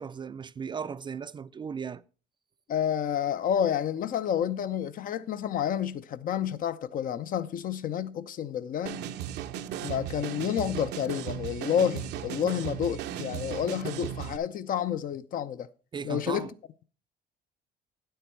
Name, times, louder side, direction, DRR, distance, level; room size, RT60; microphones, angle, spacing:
voice 1, 0.0-2.0 15.9-16.5, right 6 dB, 25° right, 0.4 m, -36 dB
voice 2, 2.7-9.0 9.8-15.7 16.0-16.5, left 9 dB, 55° left, 0.6 m, -29 dB
sound 1, 8.9-14.4, right 10 dB, 80° right, 0.7 m, -36 dB
9.3 x 8.0 x 4.4 m
cardioid pair, 110°, 17 cm